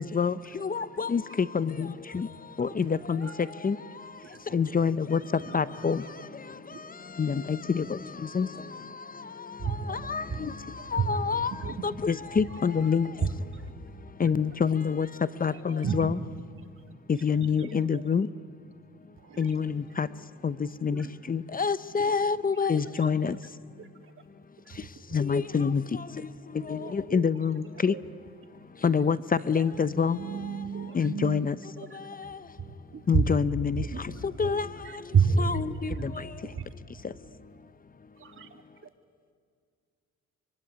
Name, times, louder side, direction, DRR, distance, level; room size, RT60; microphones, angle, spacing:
voice 1, 0.0-2.3 2.6-3.8 4.5-5.2 5.5-6.0 7.2-8.5 9.9-10.5 10.9-11.5 11.8-13.1 14.2-15.1 15.4-16.1 17.1-18.3 19.4-20.1 20.4-20.5 20.8-23.4 25.1-26.0 26.7-27.9 28.8-29.2 29.5-30.2 30.9-31.5 33.1-33.8 34.4-34.7 35.8-36.1, left 6 dB, 30° left, 0.8 m, -26 dB
voice 2, 2.9-3.3 4.2-5.0 5.4-5.6 6.0-6.2 6.7-6.8 7.3-7.4 8.4-8.5 9.6-10.5 10.8-11.9 12.3-12.6 13.2-13.7 14.2-14.3 15.3-16.1 16.6-16.9 17.4-18.1 19.3-19.6 20.9-21.1 22.0-22.1 22.5-23.5 23.8-24.1 24.6-25.2 25.5-25.7 26.8-27.3 27.7-28.0 28.9-29.0 29.4-29.6 30.3-30.4 30.7-31.1 31.8-32.2 32.6-33.4 33.7-35.6 35.9-36.2 36.5-36.7 38.2-38.6, right 5 dB, 45° right, 2.6 m, -33 dB
voice 3, 29.9-31.7 36.4-36.6, right 8 dB, 60° right, 2.5 m, -38 dB
24.5 x 24.0 x 9.9 m
cardioid pair, 90°, 30 cm